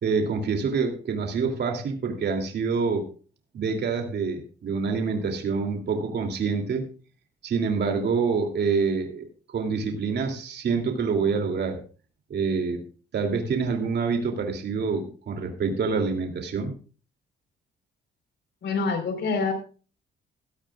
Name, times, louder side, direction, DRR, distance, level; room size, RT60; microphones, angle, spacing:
voice 1, 0.0-3.1 3.5-6.9 7.4-9.3 9.5-11.8 12.3-12.8 13.1-16.7, right 5 dB, 60° right, 4 dB, 3.0 m, -26 dB
voice 2, 18.6-19.5, left 4 dB, 60° left, 7 dB, 4.4 m, -26 dB
16.5 x 13.0 x 2.4 m, 0.37 s
cardioid pair, 90°, 20 cm